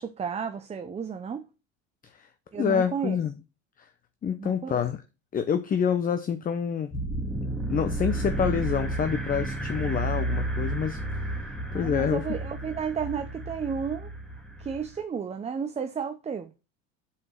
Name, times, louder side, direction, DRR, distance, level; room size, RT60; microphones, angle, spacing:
voice 1, 0.0-1.5 2.5-3.2 4.4-4.8 11.7-14.1 14.6-16.5, right 6 dB, 15° right, 0.6 m, -32 dB
voice 2, 2.0-3.3 3.8-3.9 4.2-5.0 5.3-7.0 7.7-12.2, left 7 dB, 25° left, 0.6 m, -28 dB
sound 1, 6.9-15.0, right 1 dB, ahead, 2.1 m, -32 dB
5.6 x 4.7 x 6.5 m
hypercardioid pair, 95°, 37 cm